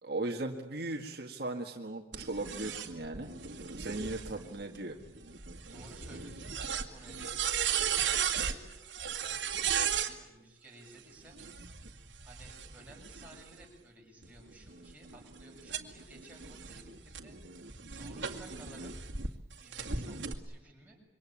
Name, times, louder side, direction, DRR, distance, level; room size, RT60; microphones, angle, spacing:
voice 1, 0.0-3.3 3.8-5.0, right 2 dB, 60° right, 3 dB, 1.8 m, -37 dB
sound 1, 2.1-10.1 11.3-13.6 14.2-19.3 19.7-20.3, right 8 dB, 85° right, 2.1 m, -36 dB
voice 2, 5.7-8.6 9.2-11.8 12.2-18.9 19.3-21.0, right 1 dB, 10° right, -3 dB, 7.3 m, -55 dB
27.0 x 23.5 x 8.8 m, 0.94 s
head